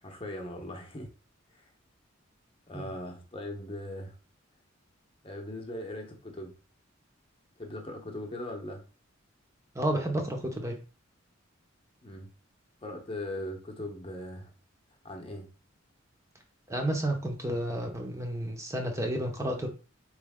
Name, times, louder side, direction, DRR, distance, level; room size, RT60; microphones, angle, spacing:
voice 1, 0.0-1.1 1.6-1.7 2.7-4.1 5.2-6.5 7.6-8.8 12.0-12.3 12.8-14.5 15.0-15.5, left 1 dB, 25° left, 2 dB, 0.9 m, -39 dB
voice 2, 9.7-10.7 16.7-19.7, right 1 dB, 15° right, 3 dB, 0.7 m, -31 dB
4.5 x 3.2 x 3.6 m, 0.35 s
head